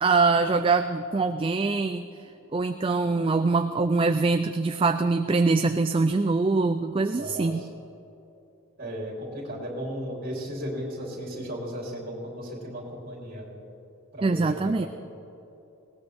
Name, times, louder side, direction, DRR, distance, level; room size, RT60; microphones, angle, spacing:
voice 1, 0.0-2.1 2.5-7.6 14.2-14.9, right 3 dB, 25° right, 8 dB, 0.3 m, -23 dB
voice 2, 7.1-7.8 8.8-13.5 14.1-14.9, equal, 40° right, -3 dB, 3.7 m, -35 dB
19.5 x 18.0 x 3.5 m, 2.8 s
head